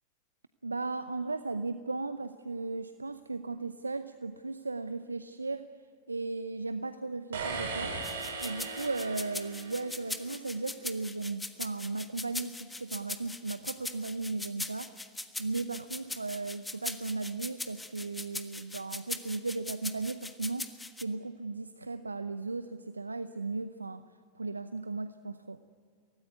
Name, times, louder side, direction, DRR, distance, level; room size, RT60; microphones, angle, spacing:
voice 1, 0.6-5.6 6.1-8.0 8.4-14.9 15.4-24.0 24.3-25.6, right 3 dB, 90° right, 12 dB, 0.7 m, -36 dB
sound 1, 7.3-10.2, right 4 dB, 70° right, 4.5 m, -38 dB
sound 2, 8.0-21.0, left 2 dB, 10° left, 1.4 m, -40 dB
24.5 x 18.0 x 9.3 m, 2.3 s
figure-of-eight pair, 95°, 0 cm